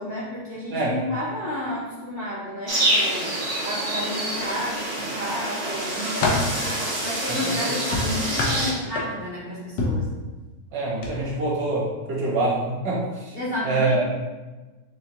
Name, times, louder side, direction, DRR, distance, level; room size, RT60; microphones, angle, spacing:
voice 1, 0.0-10.1 13.3-13.9, left 1 dB, 50° left, -8 dB, 0.7 m, -31 dB
voice 2, 0.7-1.0 7.3-7.7 10.7-13.4 13.6-14.1, right 2 dB, 70° right, -6 dB, 1.8 m, -25 dB
sound 1, 2.7-8.7, right 1 dB, 30° right, 0.7 m, -27 dB
sound 2, 4.4-5.2 5.7-6.6 7.9-9.4 9.8-10.1 10.9-11.1 11.5-11.7, left 3 dB, 90° left, 1.4 m, -27 dB
5.9 x 2.2 x 2.8 m, 1.2 s
omnidirectional pair, 1.8 m